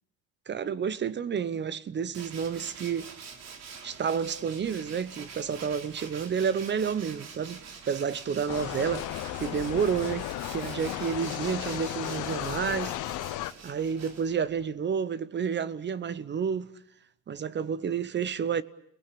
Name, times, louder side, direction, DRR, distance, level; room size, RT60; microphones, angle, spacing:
voice 1, 0.5-3.1 3.8-7.6 7.9-12.9 13.6-16.7 17.3-18.6, right 7 dB, 35° right, 0.9 m, -30 dB
Tools, 2.1-14.6, right 6 dB, 55° right, 3.2 m, -46 dB
sound 1, 8.5-13.5, left 15 dB, 70° left, 1.1 m, -34 dB
29.5 x 19.5 x 8.5 m
cardioid pair, 105°, 32 cm